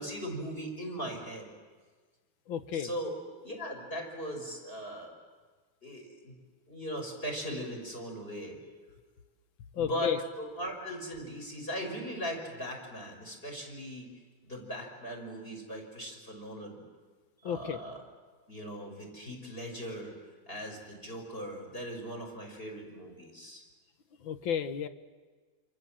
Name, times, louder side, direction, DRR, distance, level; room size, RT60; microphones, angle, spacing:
voice 1, 0.0-1.5 2.7-3.1 3.4-5.1 5.8-6.4 6.7-8.6 9.7-14.1 14.4-16.8 17.4-18.0 18.5-20.1 20.5-23.6, equal, 25° left, 0 dB, 5.9 m, -39 dB
voice 2, 2.5-2.9 9.7-10.2 17.4-17.8 24.2-24.9, left 8 dB, 75° left, 10 dB, 1.8 m, -32 dB
28.5 x 26.0 x 7.6 m, 1.4 s
omnidirectional pair, 2.2 m